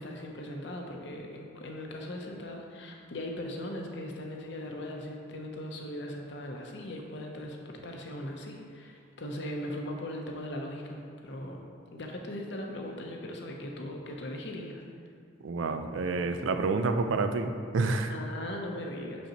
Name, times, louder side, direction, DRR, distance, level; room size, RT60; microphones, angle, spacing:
voice 1, 0.0-11.6 11.9-14.8 18.1-19.3, left 1 dB, 65° left, 1 dB, 0.7 m, -39 dB
voice 2, 15.4-18.1, right 3 dB, 90° right, 7 dB, 0.4 m, -28 dB
6.5 x 5.2 x 3.0 m, 2.3 s
head